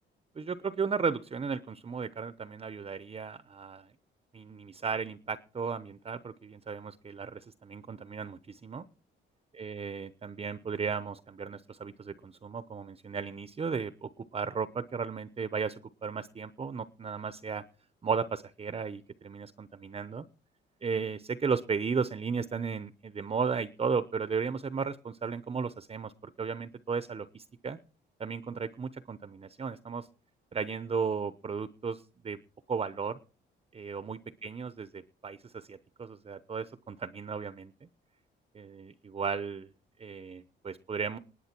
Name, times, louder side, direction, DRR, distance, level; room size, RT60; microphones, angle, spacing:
voice 1, 0.4-3.9 4.3-8.9 9.5-17.6 18.0-20.2 20.8-27.8 28.2-30.1 30.5-32.4 32.7-33.2 33.7-37.9 38.5-39.7 40.0-41.2, right 5 dB, 30° right, 14 dB, 0.9 m, -35 dB
19.5 x 8.0 x 4.5 m, 0.37 s
cardioid pair, 90°, 20 cm